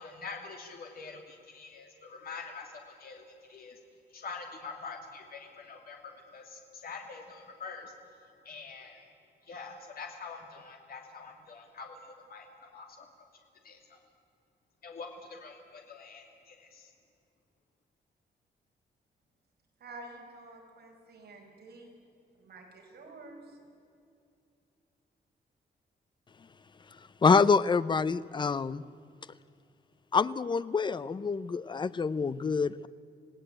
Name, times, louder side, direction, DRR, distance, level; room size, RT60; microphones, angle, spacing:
voice 1, 0.0-3.2 3.5-3.8 4.1-7.9 8.4-9.1 9.5-13.1 13.6-14.0 14.8-16.9, left 4 dB, 60° left, 2 dB, 2.7 m, -45 dB
voice 2, 19.8-21.9 22.4-23.6, right 2 dB, 65° right, 0 dB, 5.9 m, -49 dB
voice 3, 27.2-28.8 30.1-32.9, left 5 dB, 25° left, 16 dB, 0.5 m, -26 dB
27.0 x 17.5 x 8.9 m, 2.6 s
wide cardioid pair, 175°, 18 cm